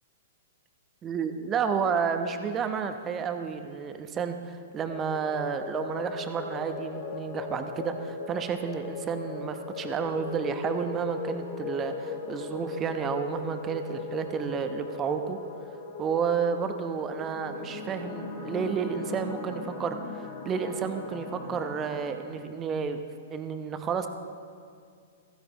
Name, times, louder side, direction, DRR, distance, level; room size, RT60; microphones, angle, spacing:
voice 1, 1.0-15.4 16.0-23.0 23.3-24.1, right 6 dB, 25° right, 7 dB, 1.0 m, -31 dB
sound 1, 4.9-22.2, left 4 dB, 50° left, 3.5 m, -38 dB
15.5 x 15.0 x 3.1 m, 2.2 s
figure-of-eight pair, 110°, 0 cm